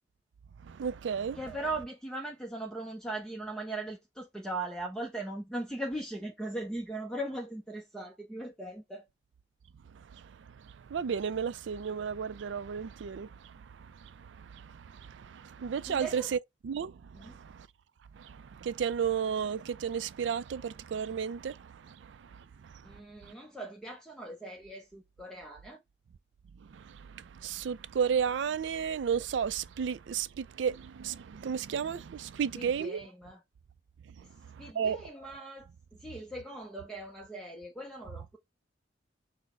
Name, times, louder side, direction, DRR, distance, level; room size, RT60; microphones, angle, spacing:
voice 1, 0.6-1.4 9.9-16.4 16.6-17.7 18.1-23.3 26.6-33.0 34.1-35.0, right 7 dB, 75° right, 0.4 m, -34 dB
voice 2, 1.4-9.1 15.9-16.3 17.1-17.3 22.8-25.8 32.5-33.4 34.2-34.3 34.6-35.7 36.0-38.4, right 2 dB, 5° left, 0.6 m, -39 dB
6.1 x 2.1 x 3.6 m
head